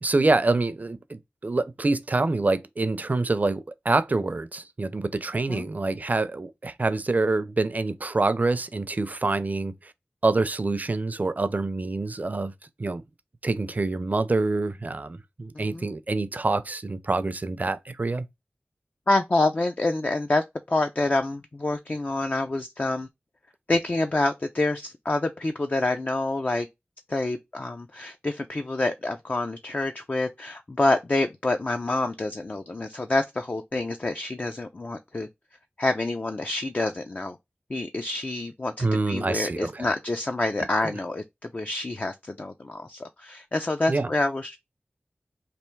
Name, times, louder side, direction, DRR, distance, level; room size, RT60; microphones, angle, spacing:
voice 1, 0.0-9.9 10.2-12.5 12.8-13.0 13.4-18.3 38.8-39.9 40.8-40.9 43.9-44.1, right 3 dB, 45° right, 0.5 m, -26 dB
voice 2, 15.5-15.9 19.1-23.1 23.7-26.7 27.1-35.3 35.8-37.4 37.7-44.6, left 2 dB, 40° left, 0.4 m, -27 dB
3.3 x 2.5 x 4.4 m
wide cardioid pair, 75°, 4 cm